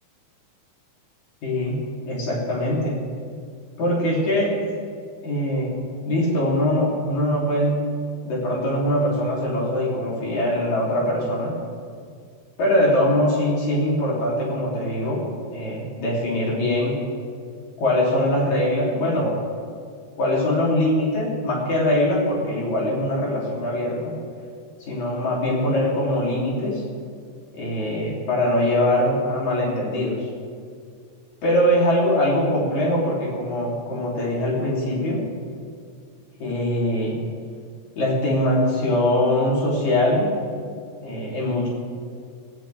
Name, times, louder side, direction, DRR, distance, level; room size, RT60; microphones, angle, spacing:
voice 1, 1.4-3.0 3.8-4.5 5.2-5.7 6.1-7.8 8.2-11.6 12.6-15.2 15.5-17.0 17.8-19.4 20.2-24.2 24.9-26.8 27.5-30.2 31.4-35.2 36.4-37.2 38.0-40.3 41.0-41.7, left 1 dB, 75° left, -5 dB, 4.6 m, -22 dB
17.0 x 17.0 x 3.5 m, 2.1 s
omnidirectional pair, 3.3 m